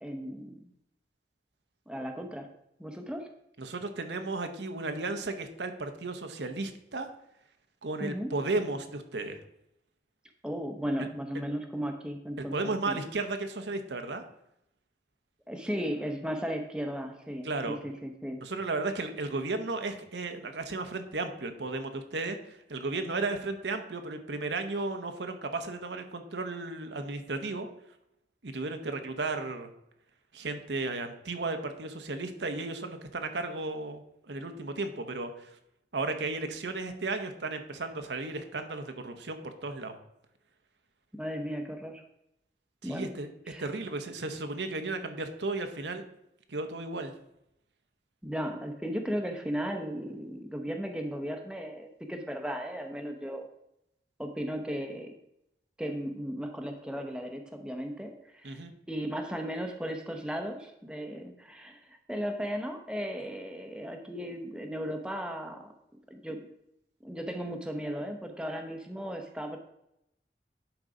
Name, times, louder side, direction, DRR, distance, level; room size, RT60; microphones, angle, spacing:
voice 1, 0.0-0.7 1.9-2.5 2.8-3.3 8.0-8.3 10.4-13.0 15.5-18.4 41.1-42.0 42.8-43.1 43.5-43.7 48.2-53.5 54.2-55.1 55.8-58.6 58.9-65.7 66.1-66.5 67.0-69.6, equal, 5° right, 4 dB, 0.7 m, -36 dB
voice 2, 3.6-7.1 7.8-9.4 12.5-14.2 17.4-17.8 18.4-27.7 28.4-29.7 30.3-35.6 35.9-39.9 42.8-43.3 43.6-46.0 46.5-47.1 58.4-58.7, right 3 dB, 85° right, 6 dB, 0.9 m, -34 dB
10.5 x 4.0 x 4.9 m, 0.81 s
head